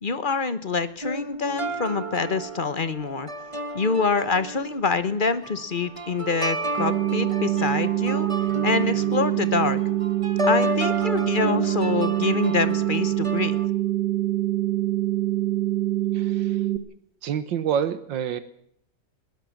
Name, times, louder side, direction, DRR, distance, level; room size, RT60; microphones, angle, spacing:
voice 1, 0.0-3.3 3.7-8.3 8.6-9.8 10.4-13.6, left 4 dB, 35° left, 14 dB, 0.9 m, -26 dB
sound 1, 1.0-13.7, right 1 dB, 20° right, 1.2 m, -32 dB
sound 2, 6.8-16.8, right 15 dB, 75° right, 2.5 m, -25 dB
voice 2, 16.1-16.6 17.2-18.4, right 8 dB, 90° right, 13 dB, 1.8 m, -27 dB
21.0 x 17.5 x 7.2 m, 0.68 s
omnidirectional pair, 2.0 m